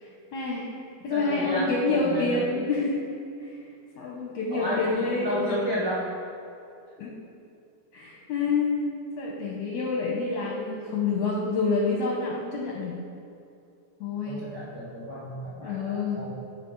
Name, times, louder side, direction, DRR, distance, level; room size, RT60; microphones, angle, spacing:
voice 1, 0.0-0.7 1.0-3.0 3.4-3.6 4.0-5.4 7.0-7.1 7.9-13.0 14.0-14.4 15.6-16.2, left 3 dB, 75° left, -2 dB, 1.7 m, -28 dB
voice 2, 1.1-2.7 4.5-6.0 14.2-16.3, equal, 80° right, -8 dB, 0.9 m, -32 dB
13.0 x 4.5 x 3.9 m, 2.6 s
omnidirectional pair, 4.0 m